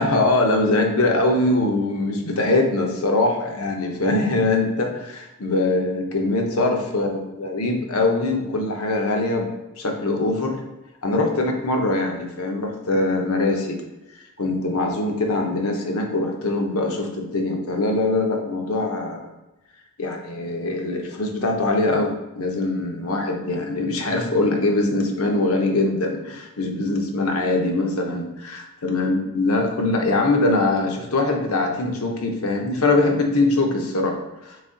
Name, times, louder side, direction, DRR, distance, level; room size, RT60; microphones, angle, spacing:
voice 1, 0.0-9.5 9.8-10.6 11.0-13.8 14.4-19.3 20.0-34.2 34.4-34.6, left 2 dB, 65° left, 2 dB, 0.8 m, -22 dB
4.0 x 3.5 x 3.8 m, 1.0 s
head